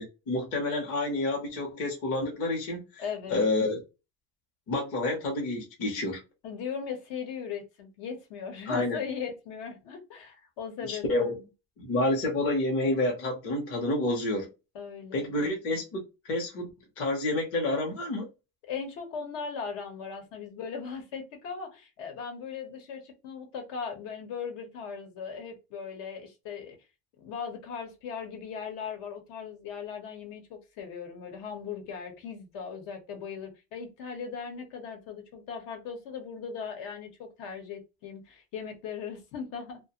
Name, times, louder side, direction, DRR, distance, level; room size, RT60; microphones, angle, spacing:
voice 1, 0.0-3.0 3.3-3.8 4.7-6.2 8.7-9.0 10.8-11.4 11.8-14.5 15.1-16.7 17.0-18.3, left 2 dB, 30° left, 0.7 m, -29 dB
voice 2, 3.0-3.5 6.4-11.4 14.7-15.8 18.7-26.8 27.2-39.8, left 6 dB, 65° left, 1.0 m, -38 dB
2.5 x 2.1 x 2.8 m
cardioid pair, 160°, 45 cm